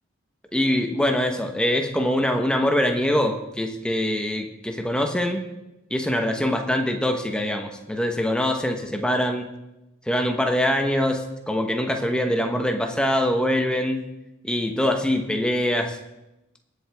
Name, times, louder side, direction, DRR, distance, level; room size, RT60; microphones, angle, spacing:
voice 1, 0.5-5.5 5.9-9.5 10.1-14.1 14.4-16.0, left 1 dB, 5° left, 3 dB, 1.1 m, -23 dB
22.5 x 7.9 x 3.5 m, 0.95 s
head